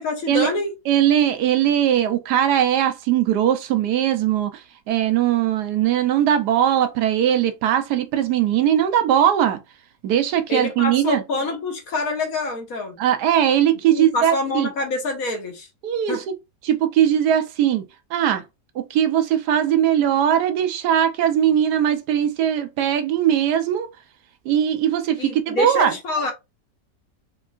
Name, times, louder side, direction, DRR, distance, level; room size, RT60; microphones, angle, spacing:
voice 1, 0.0-0.7 10.5-13.0 13.9-15.7 16.1-16.2 25.2-26.3, left 2 dB, 60° left, 1.3 m, -26 dB
voice 2, 0.9-4.6 4.9-9.6 10.0-11.2 13.0-14.7 15.8-16.3 16.6-17.8 18.1-18.4 18.7-23.9 24.5-25.9, right 10 dB, 75° right, 1.1 m, -20 dB
4.5 x 3.0 x 2.4 m
omnidirectional pair, 1.8 m